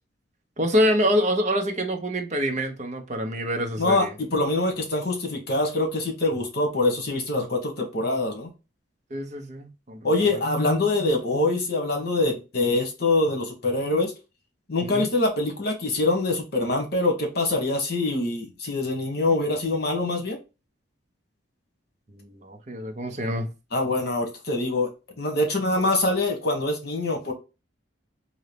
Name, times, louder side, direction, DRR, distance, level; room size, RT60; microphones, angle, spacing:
voice 1, 0.6-4.1 9.1-10.4 14.8-15.1 22.1-23.5, equal, 35° right, 0.7 m, -26 dB
voice 2, 3.8-8.5 10.0-14.1 14.7-20.4 23.7-24.9 25.2-27.3, left 2 dB, 50° left, 1.3 m, -24 dB
3.8 x 2.8 x 3.3 m
head